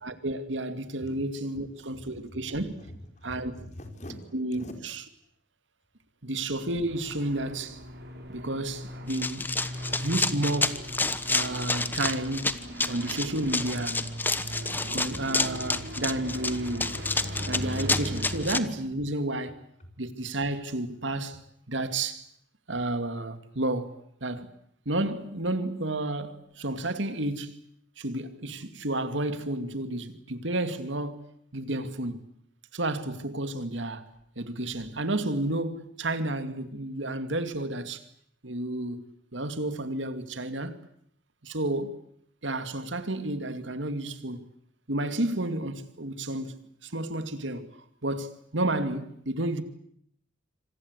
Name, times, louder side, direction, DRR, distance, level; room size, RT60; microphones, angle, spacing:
voice 1, 0.0-2.7 3.2-3.5 4.3-5.0 6.2-7.8 8.3-9.5 10.0-10.8 11.3-12.5 12.9-14.0 14.9-17.0 17.5-19.6 20.0-21.4 21.7-22.2 22.7-24.5 24.9-27.6 28.0-32.2 32.7-34.1 34.4-38.0 38.4-40.8 41.4-42.0 42.4-44.4 44.9-47.7 48.0-49.6, right 1 dB, 85° right, 2.5 m, -31 dB
voice 2, 1.9-4.3 4.6-4.7 14.8-15.2 19.4-19.5 19.8-19.9, equal, 40° left, 4.9 m, -45 dB
sound 1, 6.9-18.6, equal, 60° right, 5.7 m, -38 dB
Run, 9.1-18.6, left 3 dB, 10° left, 1.1 m, -29 dB
26.5 x 26.0 x 8.2 m
head